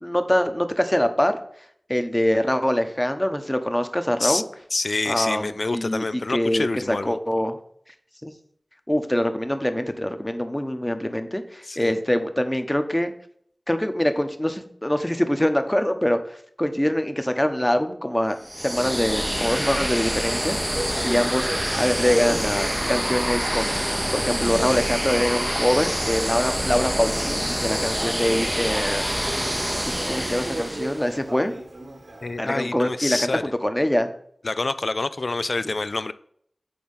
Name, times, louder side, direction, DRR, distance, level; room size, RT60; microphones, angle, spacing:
voice 1, 0.0-1.4 1.9-4.4 5.1-7.6 8.2-8.3 8.9-13.1 13.7-20.6 21.0-23.8 24.1-29.1 29.8-31.5 32.4-33.3 33.6-34.1, left 1 dB, 15° left, 1.0 m, -24 dB
voice 2, 4.7-7.2 11.6-11.9 21.0-21.2 32.2-33.4 34.4-36.1, left 3 dB, 70° left, 0.4 m, -27 dB
sound 1, 18.4-31.1, equal, 10° right, 0.7 m, -26 dB
Speech, 20.2-32.6, right 1 dB, 70° right, 1.5 m, -38 dB
8.6 x 4.3 x 5.5 m
wide cardioid pair, 45°, 0 cm